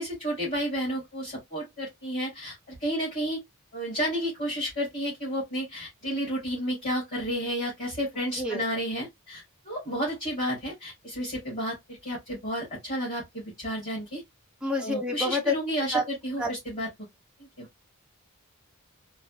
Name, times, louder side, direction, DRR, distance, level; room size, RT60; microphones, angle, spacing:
voice 1, 0.0-3.4 3.7-14.2 14.8-16.9 17.6-17.7, equal, 30° left, 2.4 m, -31 dB
voice 2, 14.6-15.5 15.9-16.0 16.4-16.5, left 1 dB, 5° right, 0.6 m, -27 dB
4.1 x 2.3 x 2.5 m
head